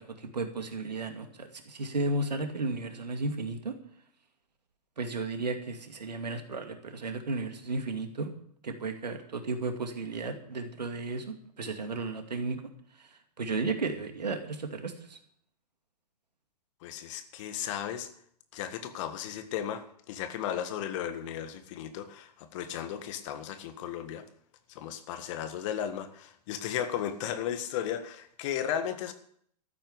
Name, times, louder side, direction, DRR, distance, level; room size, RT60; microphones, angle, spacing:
voice 1, 0.0-3.7 5.0-8.3 8.6-11.3 11.6-12.6 13.4-15.2, right 3 dB, 80° right, 6 dB, 2.4 m, -34 dB
voice 2, 16.8-18.1 18.5-24.2 24.8-29.1, left 9 dB, 45° left, 10 dB, 1.8 m, -35 dB
14.0 x 8.7 x 8.1 m, 0.64 s
figure-of-eight pair, 105°, 21 cm